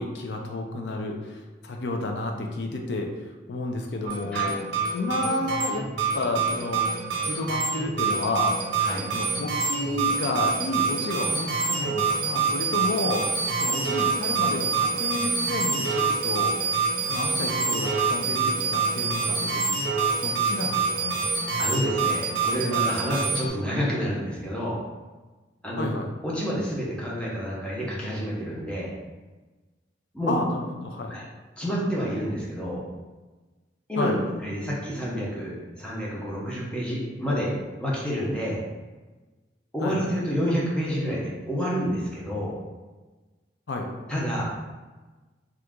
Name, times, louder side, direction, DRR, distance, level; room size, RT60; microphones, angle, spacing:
voice 1, 0.0-3.1 3.5-4.6 4.9-5.9 6.1-6.9 7.2-8.6 9.1-13.3 13.6-16.6 17.0-19.8 20.2-21.2 25.8-26.1 30.3-31.2 34.0-34.2 39.8-40.0 43.7-43.9, left 2 dB, 70° left, 2 dB, 0.4 m, -31 dB
sound 1, 4.1-23.5, right 4 dB, 70° right, 0.8 m, -26 dB
voice 2, 21.6-24.8 25.6-25.9 26.2-28.9 30.1-30.3 31.1-31.2 31.6-32.8 33.9-34.1 34.4-37.5 37.8-38.6 39.7-42.5 44.1-44.5, equal, 5° left, -5 dB, 0.6 m, -29 dB
2.9 x 2.4 x 3.5 m, 1.2 s
head